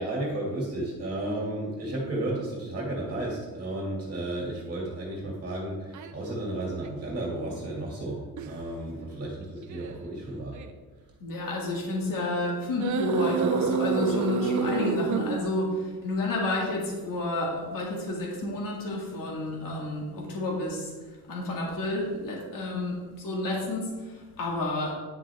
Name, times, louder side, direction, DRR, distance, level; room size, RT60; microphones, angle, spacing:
voice 1, 0.0-10.6, right 1 dB, 25° right, -3 dB, 2.2 m, -33 dB
sound 1, 5.9-6.1 6.8-6.9 8.4-8.6 9.6-9.9 10.5-10.7 12.8-15.4, right 5 dB, 55° right, 0.8 m, -27 dB
voice 2, 11.2-20.9 21.3-24.9, left 2 dB, 65° left, -2 dB, 2.1 m, -30 dB
9.7 x 7.5 x 3.5 m, 1.3 s
cardioid pair, 140°, 37 cm